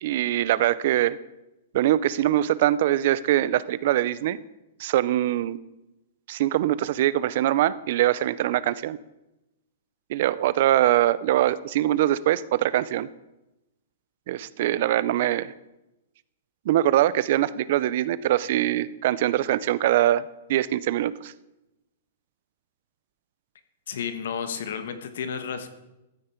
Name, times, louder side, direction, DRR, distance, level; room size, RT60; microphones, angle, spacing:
voice 1, 0.0-1.2 1.7-4.4 4.8-5.6 6.3-9.0 10.1-13.1 14.3-15.5 16.7-20.2 20.5-21.3, right 13 dB, 45° right, 18 dB, 0.4 m, -23 dB
voice 2, 23.9-25.7, left 7 dB, 70° left, 10 dB, 1.3 m, -32 dB
14.0 x 8.6 x 4.4 m, 0.95 s
hypercardioid pair, 170°, 0 cm